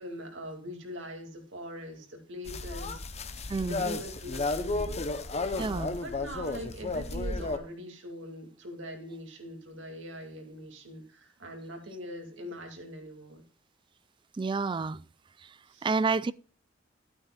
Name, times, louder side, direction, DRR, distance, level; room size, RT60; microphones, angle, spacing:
voice 1, 0.0-3.0 3.3-13.4 15.7-15.9, equal, 85° right, 2.4 m, -42 dB
sound 1, 2.5-7.6, left 2 dB, 35° left, 0.8 m, -33 dB
voice 2, 3.5-3.9 5.6-6.0 14.3-15.0 15.4-16.3, right 4 dB, 25° right, 0.3 m, -30 dB
12.5 x 8.9 x 2.4 m
head